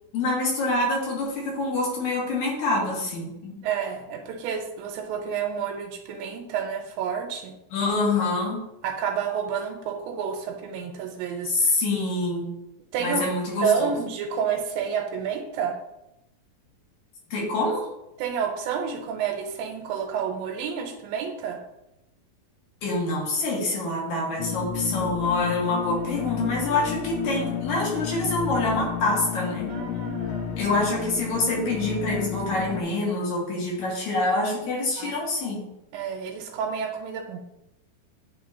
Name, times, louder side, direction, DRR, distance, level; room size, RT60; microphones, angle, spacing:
voice 1, 0.1-3.6 7.7-8.6 11.4-12.5 13.0-13.9 17.3-17.9 22.8-29.7 30.6-35.7, left 2 dB, 60° left, -3 dB, 2.7 m, -26 dB
voice 2, 3.6-7.6 8.8-11.5 12.9-13.3 13.6-15.8 18.2-21.6 29.7-30.5 35.0-35.1 35.9-37.5, right 7 dB, 90° right, 3 dB, 2.4 m, -29 dB
sound 1, 24.4-32.8, left 8 dB, 85° left, 2.4 m, -31 dB
9.5 x 3.6 x 2.8 m, 0.87 s
omnidirectional pair, 4.1 m